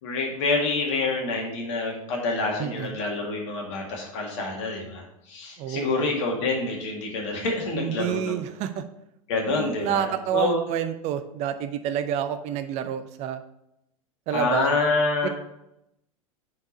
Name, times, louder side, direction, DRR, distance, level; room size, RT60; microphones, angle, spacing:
voice 1, 0.0-8.4 9.3-10.6 14.3-15.3, left 3 dB, 55° left, 0 dB, 1.8 m, -27 dB
voice 2, 2.6-3.0 5.6-6.2 7.7-8.8 9.4-13.4 14.3-14.7 15.2-15.3, right 10 dB, 40° right, 11 dB, 0.6 m, -29 dB
5.3 x 4.7 x 5.2 m, 0.83 s
figure-of-eight pair, 90°, 18 cm